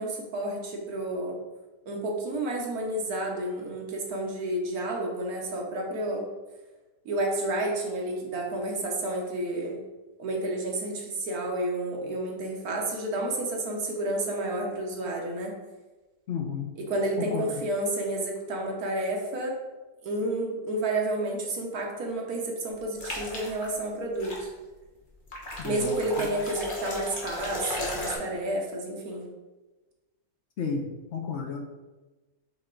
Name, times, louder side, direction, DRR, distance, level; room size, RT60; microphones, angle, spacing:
voice 1, 0.0-1.4 1.9-6.2 7.0-9.8 10.2-15.5 16.8-19.6 20.0-24.5 25.6-29.2, right 1 dB, 75° right, 0 dB, 1.5 m, -30 dB
voice 2, 16.3-16.7 17.2-17.4 25.6-25.9 26.2-26.3 30.6-31.6, left 6 dB, 60° left, 2 dB, 0.8 m, -32 dB
sound 1, 23.0-23.7 24.2-24.4 25.3-28.1, left 1 dB, 35° left, 1.2 m, -35 dB
7.7 x 3.4 x 3.8 m, 1.2 s
omnidirectional pair, 1.6 m